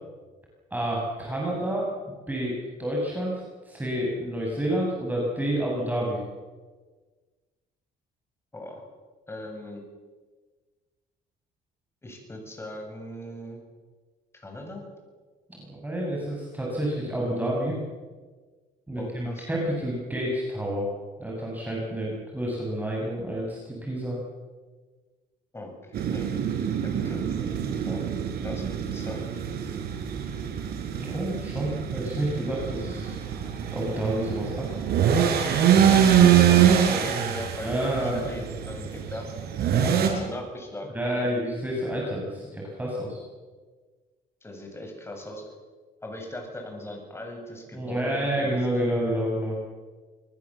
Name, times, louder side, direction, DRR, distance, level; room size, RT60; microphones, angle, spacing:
voice 1, 0.7-1.9 2.3-6.2 15.7-17.7 18.9-20.9 21.2-24.2 31.0-33.2 33.7-34.8 37.6-38.3 39.7-39.9 40.9-43.2 47.7-49.6, right 1 dB, 10° right, -3 dB, 6.8 m, -29 dB
voice 2, 9.3-9.8 12.0-13.6 14.4-14.8 18.9-19.5 25.5-26.3 27.0-27.5 27.9-28.1 28.4-29.2 36.5-39.2 40.0-41.3 44.4-45.4 46.0-48.9, left 1 dB, 15° left, 2 dB, 7.8 m, -39 dB
sound 1, 25.9-40.1, right 9 dB, 70° right, 5.5 m, -24 dB
28.5 x 20.5 x 7.4 m, 1.4 s
cardioid pair, 110°, 17 cm